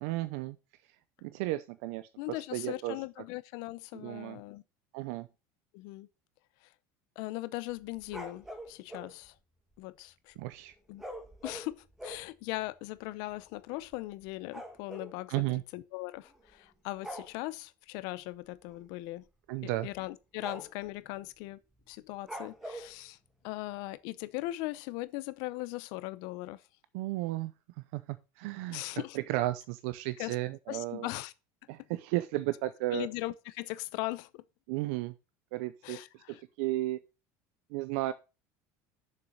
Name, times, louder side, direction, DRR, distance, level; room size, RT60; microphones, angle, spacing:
voice 1, 0.0-0.6 1.2-3.0 3.9-4.4 4.9-5.3 10.4-10.7 15.3-15.6 19.5-19.9 26.9-27.5 27.9-31.1 31.7-33.1 34.7-35.1 35.5-37.0 37.7-38.1, right 17 dB, 70° right, 0.6 m, -34 dB
voice 2, 2.2-4.6 5.7-6.1 7.2-9.3 9.8-10.4 10.9-11.0 11.4-15.4 15.7-19.2 19.6-21.6 21.9-23.2 23.4-26.6 28.7-29.2 30.2-30.3 30.7-31.3 32.9-34.4 35.8-36.4, left 19 dB, 60° left, 0.6 m, -39 dB
sound 1, 7.7-9.1 11.0-12.3 13.0-13.1 13.3-13.5 13.8-15.1 16.2-16.6 17.0-17.3 18.7-18.9 19.3-19.4 19.9-20.0 20.4-20.9 22.2-22.9, equal, 5° right, 1.6 m, -44 dB
7.1 x 6.6 x 6.4 m
cardioid pair, 170°, 8 cm